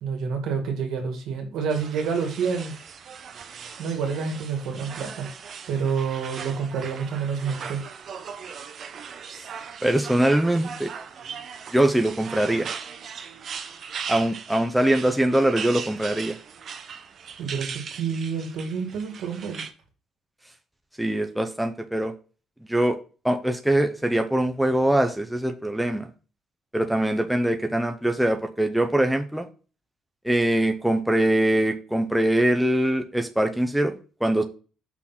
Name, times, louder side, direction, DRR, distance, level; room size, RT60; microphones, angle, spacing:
voice 1, 0.0-2.7 3.8-5.3 5.7-7.8 17.4-19.6, right 6 dB, 70° right, 3 dB, 2.1 m, -28 dB
sound 1, 1.7-19.7, right 6 dB, 45° right, 0.7 m, -39 dB
voice 2, 9.8-10.9 11.7-12.7 14.1-16.4 21.0-22.1 22.7-23.0 23.2-26.1 26.7-29.5 30.2-34.4, right 1 dB, 5° right, 5 dB, 0.5 m, -22 dB
6.0 x 3.8 x 5.8 m, 0.37 s
cardioid pair, 150°, 0 cm